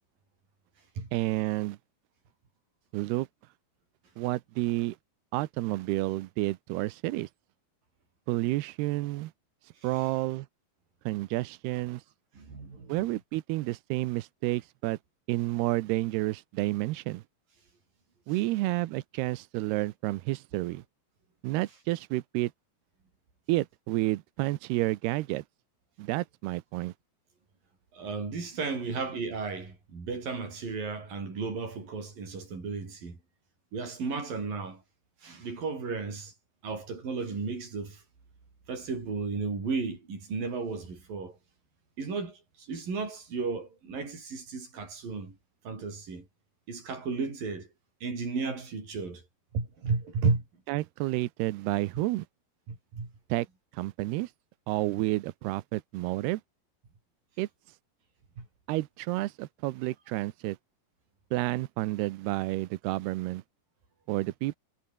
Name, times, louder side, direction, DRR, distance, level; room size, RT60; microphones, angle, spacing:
voice 1, 1.1-1.8 2.9-3.3 4.2-5.0 5.3-7.3 8.3-9.3 9.8-10.5 11.1-12.0 12.9-15.0 15.3-17.2 18.3-20.8 21.4-22.5 23.5-25.4 26.0-26.9 50.7-52.3 53.3-53.5 53.7-54.3 54.7-56.4 57.4-57.5 58.7-60.6 61.3-63.4 64.1-64.6, right 18 dB, 90° right, 2.9 m, -30 dB
voice 2, 12.3-13.1 27.9-33.2 33.7-34.8 35.2-36.3 36.6-38.0 38.7-41.4 42.0-45.4 45.7-46.3 46.7-47.7 48.0-49.2 49.5-50.4 52.7-53.1 58.4-58.5, right 4 dB, 60° right, 8.9 m, -34 dB
omnidirectional pair, 4.5 m